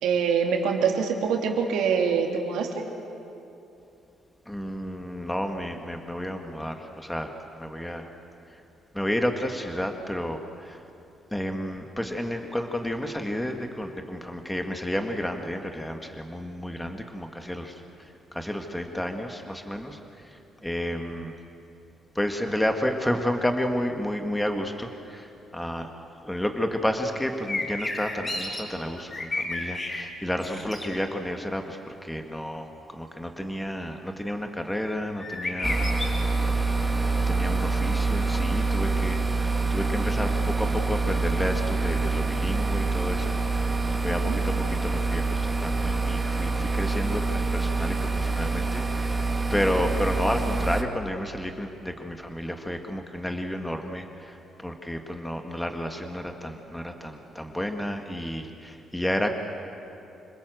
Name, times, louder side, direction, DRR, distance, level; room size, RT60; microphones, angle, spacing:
voice 1, 0.0-2.8 44.3-44.4, right 6 dB, 90° right, 2 dB, 2.8 m, -24 dB
voice 2, 4.5-7.3 7.6-8.1 8.5-8.6 8.9-10.8 11.3-21.4 22.2-36.1 37.1-43.8 44.0-49.3 49.5-59.3, equal, 5° left, 4 dB, 1.8 m, -31 dB
sound 1, 27.5-28.6 29.0-30.0 30.4-30.9 35.2-36.1, left 2 dB, 30° left, 5.1 m, -31 dB
sound 2, 35.6-50.8, right 3 dB, 15° right, 1.8 m, -26 dB
27.0 x 20.5 x 7.9 m, 2.8 s
cardioid pair, 90°, 0 cm